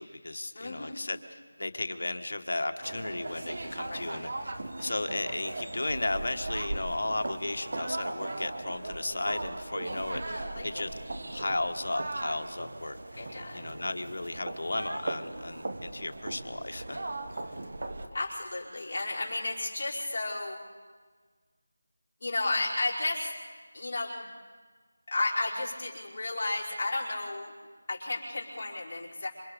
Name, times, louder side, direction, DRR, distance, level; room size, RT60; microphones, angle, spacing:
voice 1, 0.0-4.5 4.8-10.9 11.3-17.0, left 2 dB, 65° left, 8 dB, 1.4 m, -35 dB
voice 2, 0.5-1.0 3.9-4.1 10.3-10.8 13.2-13.6 18.1-20.6 22.2-23.3 23.7-24.2 25.1-27.5 27.9-29.3, left 2 dB, 40° left, -4 dB, 5.0 m, -33 dB
sound 1, 2.8-18.1, right 2 dB, 55° right, 1.8 m, -38 dB
27.0 x 25.5 x 5.1 m, 1.5 s
figure-of-eight pair, 170°, 0 cm